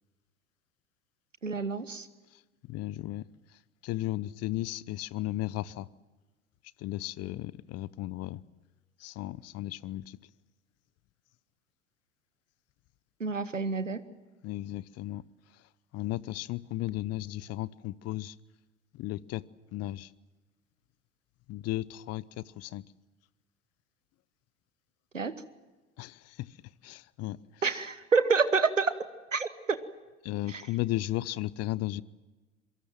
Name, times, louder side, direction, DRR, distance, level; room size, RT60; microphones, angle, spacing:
voice 1, 1.4-2.1 13.2-14.0 25.1-25.4 27.6-28.9 29.3-29.8 30.5-30.6, right 4 dB, 90° right, 14 dB, 1.2 m, -28 dB
voice 2, 2.7-3.3 3.8-5.9 6.8-8.4 9.0-10.2 14.4-15.2 15.9-18.3 18.9-19.4 19.7-20.1 21.5-22.8 26.0-26.5 26.8-27.4 30.2-32.0, left 16 dB, 40° left, 22 dB, 0.9 m, -35 dB
26.0 x 23.5 x 7.5 m, 1.2 s
figure-of-eight pair, 70°, 37 cm